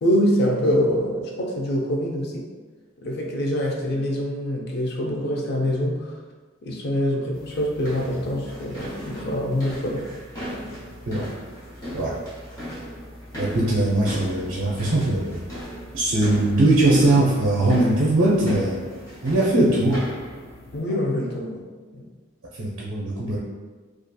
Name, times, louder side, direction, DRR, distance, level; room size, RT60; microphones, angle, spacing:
voice 1, 0.0-2.5 3.0-6.1 6.6-10.1 20.7-21.6 21.9-22.1, equal, 50° left, -1 dB, 0.4 m, -24 dB
sound 1, 7.3-20.8, equal, 15° left, 0.7 m, -36 dB
voice 2, 13.3-15.4 15.9-18.8 19.2-20.0 22.6-23.4, right 2 dB, 65° right, -6 dB, 0.5 m, -20 dB
2.7 x 2.4 x 2.2 m, 1.4 s
head